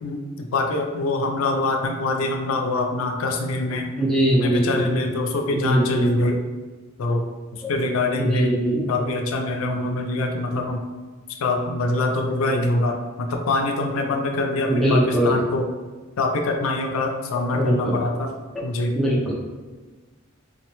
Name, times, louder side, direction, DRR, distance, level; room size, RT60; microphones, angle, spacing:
voice 1, 0.0-3.9 4.3-6.4 7.0-7.2 7.5-8.6 8.9-10.9 11.4-15.7 16.2-18.3 18.6-19.0, left 2 dB, 85° left, 3 dB, 0.4 m, -24 dB
voice 2, 4.0-5.0 5.5-6.1 7.6-7.7 8.1-8.9 14.7-15.4 17.5-17.9 18.9-19.4, equal, ahead, -6 dB, 0.6 m, -21 dB
3.9 x 2.1 x 2.9 m, 1.3 s
head